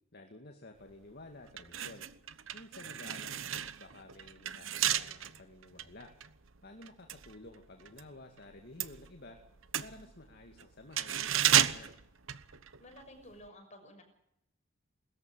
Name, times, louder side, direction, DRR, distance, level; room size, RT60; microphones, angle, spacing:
voice 1, 0.1-2.1 2.5-6.1 6.6-9.4 9.8-11.9, left 2 dB, 50° left, 4 dB, 2.2 m, -52 dB
sound 1, 0.9-1.0 1.5-8.1 8.4-13.0 13.3-13.5, right 10 dB, 80° right, 1.1 m, -33 dB
voice 2, 12.8-14.0, left 1 dB, 35° left, 4 dB, 6.2 m, -52 dB
21.0 x 14.0 x 9.2 m, 0.77 s
head